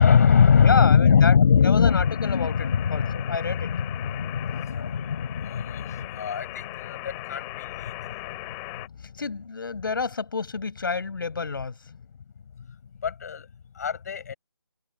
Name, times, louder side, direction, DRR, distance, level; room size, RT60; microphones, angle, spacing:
voice 1, 0.0-9.2 12.7-12.8 13.0-13.5 13.8-14.3, left 7 dB, 40° left, 7.7 m, -22 dB
voice 2, 0.6-1.4 1.6-3.7 9.1-11.8, left 4 dB, 55° left, 6.9 m, -29 dB
sound 1, 1.9-8.9, left 40 dB or more, 15° left, 4.7 m, -39 dB
figure-of-eight pair, 155°, 14 cm